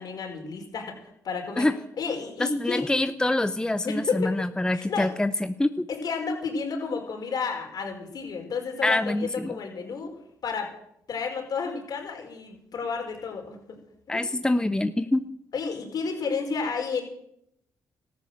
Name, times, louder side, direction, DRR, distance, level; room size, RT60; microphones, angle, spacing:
voice 1, 0.0-1.7 2.0-2.9 3.8-4.5 4.7-5.1 5.9-10.1 10.4-10.7 11.1-13.8 14.1-14.3 15.5-17.0, left 5 dB, 60° left, 3 dB, 4.6 m, -31 dB
voice 2, 2.4-5.9 8.8-9.6 14.1-15.2, left 1 dB, 10° left, 11 dB, 0.8 m, -25 dB
14.0 x 11.0 x 7.7 m, 0.76 s
supercardioid pair, 60°, 7 cm